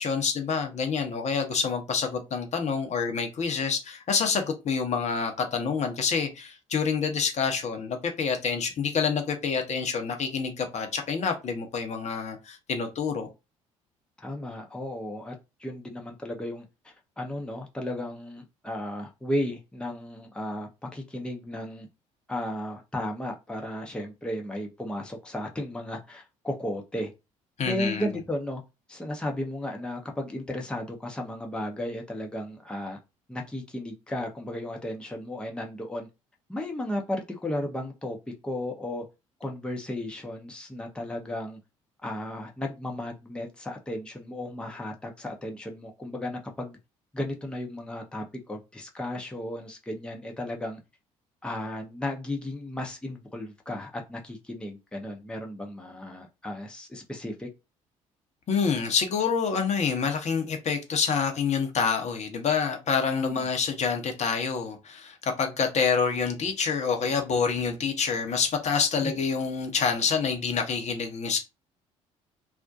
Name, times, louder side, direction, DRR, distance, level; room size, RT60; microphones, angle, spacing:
voice 1, 0.0-13.3 27.6-28.1 58.5-71.4, left 5 dB, 40° left, 0.7 m, -27 dB
voice 2, 14.2-15.3 15.6-21.9 22.3-27.1 27.6-28.6 28.9-33.0 33.3-36.1 36.5-38.2 38.4-39.0 39.4-41.6 42.0-46.8 47.1-50.8 51.4-57.5 63.2-63.4 68.9-69.2, left 1 dB, 5° left, 0.6 m, -34 dB
2.4 x 2.1 x 2.6 m
figure-of-eight pair, 50°, 17 cm